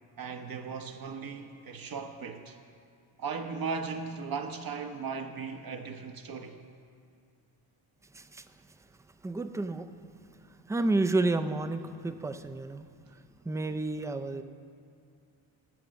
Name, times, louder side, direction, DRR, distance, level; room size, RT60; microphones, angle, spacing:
voice 1, 0.2-2.6 3.2-6.6, right 5 dB, 45° right, 0.8 m, -37 dB
voice 2, 9.2-9.9 10.7-12.9 13.5-14.4, right 2 dB, 5° right, 0.3 m, -30 dB
12.0 x 6.8 x 6.3 m
cardioid pair, 85°, 48 cm